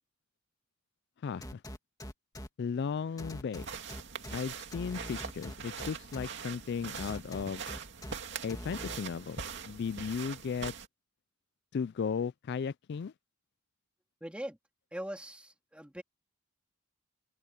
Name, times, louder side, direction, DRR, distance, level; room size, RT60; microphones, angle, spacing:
voice 1, 1.2-1.6 2.6-3.7 4.3-7.6 8.4-10.7 11.7-13.1, left 6 dB, 55° left, 0.3 m, -35 dB
sound 1, 1.4-2.5 3.2-4.4 4.7-6.3 7.0-8.1 8.5-9.0, left 1 dB, 20° left, 2.2 m, -43 dB
sound 2, 3.5-10.9, right 6 dB, 60° right, 2.5 m, -43 dB
voice 2, 14.2-14.6 14.9-16.0, equal, 5° right, 3.0 m, -41 dB
head